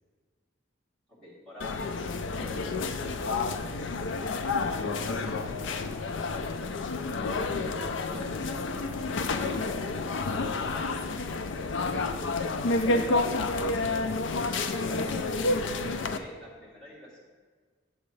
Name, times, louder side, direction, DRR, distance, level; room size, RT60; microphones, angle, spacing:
voice 1, 1.1-1.9 2.3-2.6 12.3-14.0 14.5-15.7 15.9-17.3, equal, 5° left, -9 dB, 2.1 m, -47 dB
sound 1, 1.6-16.2, left 3 dB, 65° left, 0.4 m, -30 dB
voice 2, 4.5-5.3 5.7-5.8 6.2-7.0 7.7-8.9 9.5-10.2 10.6-11.2, right 2 dB, 35° right, -2 dB, 0.9 m, -49 dB
8.4 x 6.9 x 3.2 m, 1.5 s
head